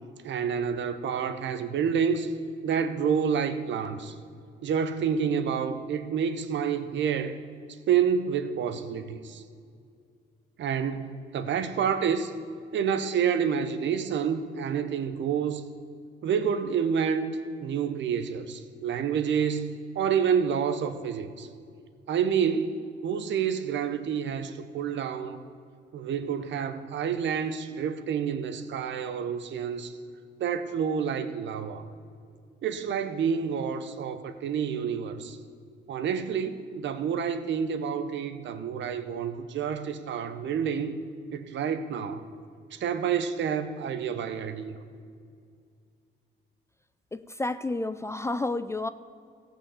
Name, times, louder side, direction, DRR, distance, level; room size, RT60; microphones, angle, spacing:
voice 1, 0.2-2.3 2.6-4.1 4.6-7.4 7.9-9.4 10.6-12.3 12.7-15.6 16.2-21.5 22.1-25.4 25.9-29.9 30.4-31.8 32.6-35.4 35.9-41.0 41.3-42.2 42.7-44.8, right 7 dB, 65° right, 10 dB, 0.9 m, -28 dB
voice 2, 47.1-48.9, left 2 dB, 15° left, 13 dB, 0.3 m, -30 dB
15.0 x 5.9 x 7.2 m, 2.3 s
cardioid pair, 90°, 20 cm